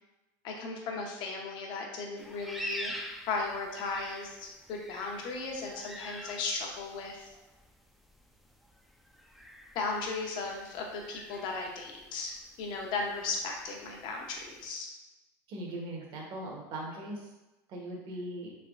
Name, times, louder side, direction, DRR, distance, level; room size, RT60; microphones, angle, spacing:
voice 1, 0.4-2.9 3.3-7.3 9.7-14.9, left 4 dB, 60° left, 1 dB, 0.8 m, -36 dB
sound 1, 2.2-14.7, equal, ahead, 0.3 m, -46 dB
voice 2, 15.5-17.2 17.7-18.5, right 1 dB, 60° right, -1 dB, 1.0 m, -39 dB
3.4 x 3.0 x 2.5 m, 1.0 s
supercardioid pair, 110°, 9 cm